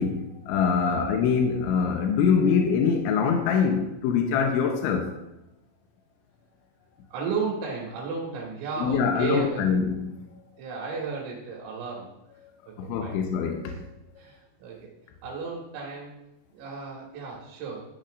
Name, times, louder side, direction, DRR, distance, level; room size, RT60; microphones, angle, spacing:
voice 1, 0.0-5.1 8.8-10.2 12.8-13.9, left 6 dB, 80° left, 3 dB, 3.0 m, -24 dB
voice 2, 7.1-9.7 10.6-12.1 12.7-13.2 13.6-13.8 14.2-14.9 15.2-16.1 16.5-17.8, right 5 dB, 85° right, -3 dB, 4.5 m, -34 dB
13.5 x 9.6 x 2.5 m, 0.93 s
omnidirectional pair, 5.8 m